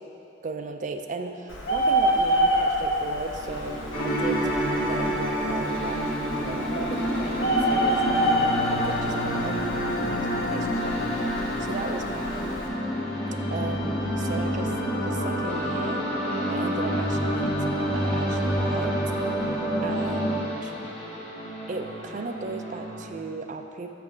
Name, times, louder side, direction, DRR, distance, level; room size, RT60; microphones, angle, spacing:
voice 1, 0.4-4.5 4.8-6.1 6.3-12.6 13.5-14.7 15.0-18.9 19.8-20.8 21.7-23.9, right 3 dB, 40° right, 5 dB, 0.4 m, -36 dB
Bird, 1.5-12.7, right 1 dB, 70° left, 1.0 m, -28 dB
sound 1, 3.4-23.1, left 1 dB, 30° left, 0.9 m, -37 dB
sound 2, 3.9-20.4, equal, 50° left, 1.1 m, -28 dB
6.4 x 5.9 x 4.9 m, 3.0 s
head